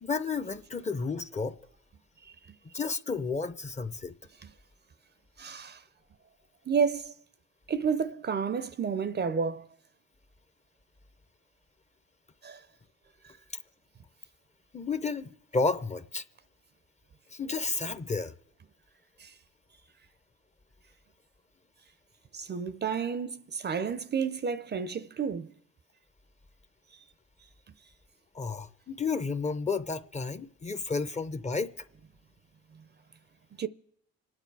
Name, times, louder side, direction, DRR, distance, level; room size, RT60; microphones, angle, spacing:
voice 1, 0.0-1.6 2.7-4.1 14.7-16.2 17.3-18.3 28.3-31.8, left 4 dB, 25° left, 0.7 m, -32 dB
voice 2, 5.4-5.8 6.7-7.1 7.7-9.7 12.4-12.6 19.2-19.3 22.3-25.5 33.6-33.7, right 6 dB, 35° right, 0.5 m, -30 dB
26.5 x 9.4 x 4.7 m
cardioid pair, 90°, 30 cm